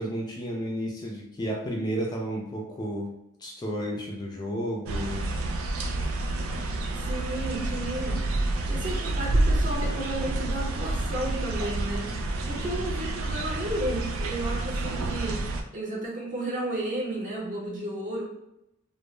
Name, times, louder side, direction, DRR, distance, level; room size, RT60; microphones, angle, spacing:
voice 1, 0.0-3.1 3.4-5.3 12.6-12.7, equal, 20° left, -1 dB, 0.3 m, -32 dB
sound 1, 4.9-15.6, right 2 dB, 75° right, 0.3 m, -29 dB
voice 2, 7.0-12.1 12.5-15.4 15.7-18.2, right 1 dB, 40° right, -3 dB, 0.7 m, -33 dB
2.1 x 2.0 x 3.0 m, 0.84 s
head